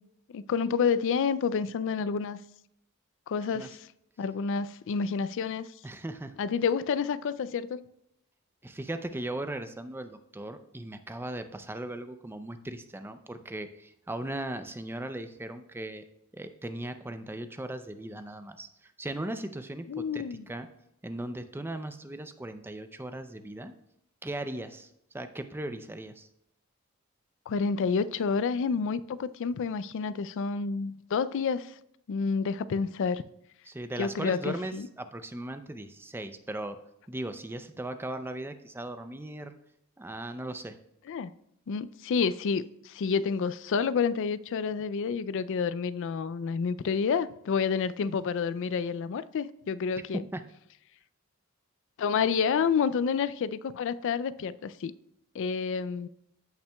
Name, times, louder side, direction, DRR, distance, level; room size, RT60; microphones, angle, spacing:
voice 1, 0.3-2.4 3.3-3.8 4.2-5.7 6.4-7.9 19.9-20.4 27.5-31.7 32.1-33.2 34.0-34.9 41.1-41.3 41.7-50.2 52.0-54.9 55.3-56.1, left 6 dB, 60° left, 0.3 m, -29 dB
voice 2, 5.8-6.3 8.6-16.0 16.3-20.7 21.0-23.7 24.2-26.3 33.7-36.8 37.1-39.5 40.0-40.8 50.1-50.4, right 1 dB, 10° right, 0.5 m, -38 dB
15.0 x 5.8 x 2.2 m
head